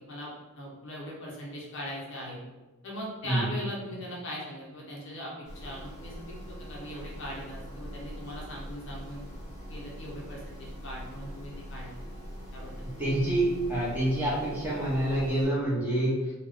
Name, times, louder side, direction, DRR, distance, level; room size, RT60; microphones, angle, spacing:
voice 1, 0.0-2.4 2.8-6.1 6.5-9.2 9.7-12.0 12.5-12.7, equal, 55° left, -3 dB, 0.8 m, -40 dB
sound 1, 5.4-15.5, equal, 10° left, 1.1 m, -42 dB
voice 2, 12.8-16.1, right 1 dB, 10° right, -9 dB, 1.2 m, -27 dB
3.4 x 2.4 x 3.6 m, 1.1 s
head